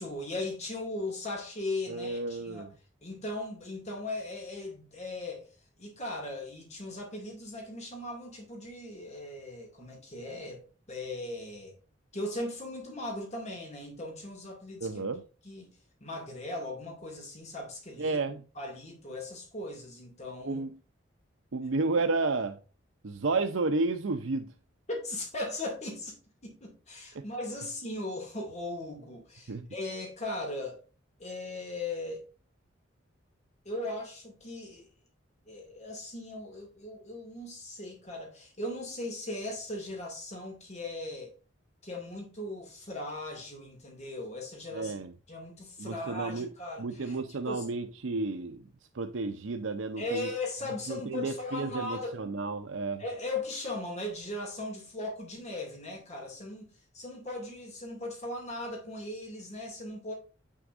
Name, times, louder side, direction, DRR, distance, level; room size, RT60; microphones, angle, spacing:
voice 1, 0.0-2.7 3.0-5.5 5.8-11.7 12.1-15.0 15.4-15.7 16.0-18.2 18.5-20.6 24.9-26.1 26.4-30.8 31.2-32.2 33.6-34.9 35.5-41.3 41.8-44.9 45.3-47.7 50.0-52.2 53.0-60.1, left 2 dB, 35° left, 2.4 m, -38 dB
voice 2, 1.9-2.7 14.8-15.2 18.0-18.4 20.4-20.7 21.5-22.6 23.0-24.5 27.2-27.3 29.5-29.7 44.7-45.1 45.8-46.5 46.8-48.6 48.9-50.3 50.9-53.0, right 3 dB, 90° right, 0.7 m, -31 dB
8.1 x 6.4 x 2.6 m
head